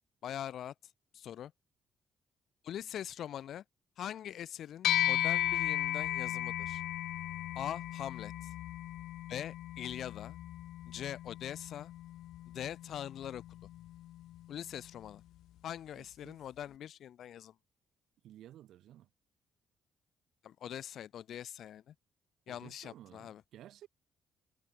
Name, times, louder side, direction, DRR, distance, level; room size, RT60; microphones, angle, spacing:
voice 1, 0.2-0.7 1.1-1.5 2.6-3.6 4.0-6.8 7.5-8.5 9.3-10.4 10.9-11.9 12.5-13.4 14.5-15.2 15.6-17.5 20.4-21.9 22.5-23.4, left 10 dB, 70° left, 7.6 m, -42 dB
sound 1, 4.8-14.5, left 14 dB, 85° left, 1.6 m, -36 dB
voice 2, 15.9-16.4 18.2-19.1 22.5-23.9, right 12 dB, 80° right, 5.9 m, -55 dB
cardioid pair, 90°, 0 cm